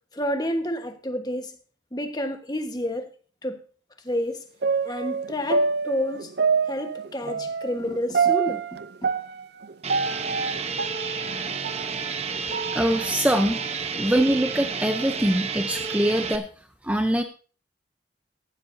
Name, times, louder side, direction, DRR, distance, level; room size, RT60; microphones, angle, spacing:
voice 1, 0.1-1.6 1.9-3.1 3.4-3.6 4.0-4.5 4.8-6.3 6.7-8.7 9.0-9.1, left 1 dB, 20° left, 1.3 m, -29 dB
sound 1, 4.6-11.8 12.3-13.6 14.0-14.1, right 5 dB, 55° right, 0.5 m, -26 dB
sound 2, 9.8-16.4, right 5 dB, 35° right, 0.9 m, -31 dB
voice 2, 12.7-13.6 13.9-16.5 16.8-17.2, right 1 dB, 5° right, 0.6 m, -23 dB
16.0 x 12.5 x 2.7 m
head